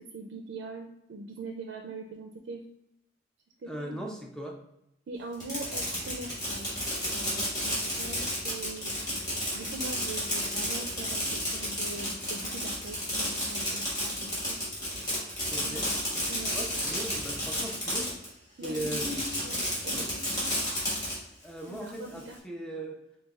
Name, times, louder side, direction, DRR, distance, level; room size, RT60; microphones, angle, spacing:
voice 1, 0.0-2.6 3.6-4.0 5.1-6.7 7.0-14.6 15.6-15.9 16.3-16.6 18.6-19.2 19.4-20.5 21.7-22.4, right 2 dB, 75° right, 3 dB, 0.4 m, -42 dB
voice 2, 3.7-4.6 15.5-15.9 16.5-18.1 18.6-19.4 19.9-20.4 21.4-23.0, right 1 dB, 5° left, 1 dB, 0.4 m, -38 dB
Fireworks, 5.3-18.3 18.6-21.1, equal, 20° left, 1.4 m, -32 dB
6.3 x 2.2 x 2.3 m, 0.82 s
head